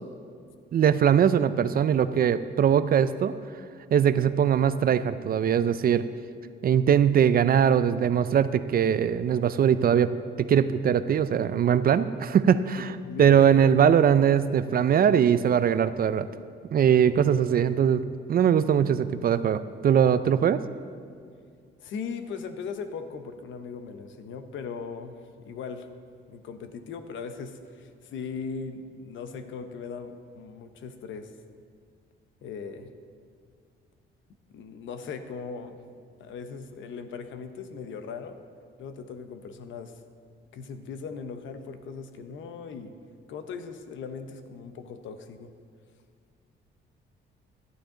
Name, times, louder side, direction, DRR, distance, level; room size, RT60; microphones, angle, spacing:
voice 1, 0.7-3.3 3.9-6.0 6.6-10.1 10.4-12.9 13.2-16.3 16.7-18.0 18.3-20.6, right 8 dB, 50° right, 13 dB, 0.5 m, -21 dB
voice 2, 13.0-13.5 21.8-25.9 26.3-31.3 32.4-32.9 34.5-35.8 36.2-38.4 38.8-40.0 40.5-43.0 43.3-45.5, left 5 dB, 75° left, 8 dB, 0.9 m, -38 dB
12.5 x 11.5 x 3.9 m, 2.1 s
cardioid pair, 90°, 20 cm